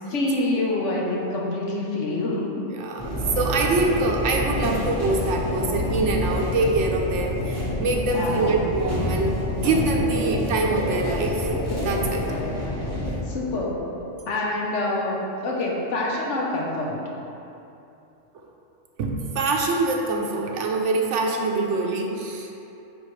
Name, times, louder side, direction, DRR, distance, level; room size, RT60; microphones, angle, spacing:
voice 1, 0.1-2.4 8.1-8.6 13.3-13.8 14.3-17.0, left 2 dB, 80° left, -3 dB, 1.2 m, -26 dB
voice 2, 2.7-11.5 11.8-12.3 18.3-18.4 19.0-22.5, right 3 dB, 80° right, 1 dB, 1.0 m, -24 dB
sound 1, 3.0-13.2, left 1 dB, 15° left, 0.9 m, -27 dB
9.0 x 3.8 x 3.2 m, 2.8 s
omnidirectional pair, 1.2 m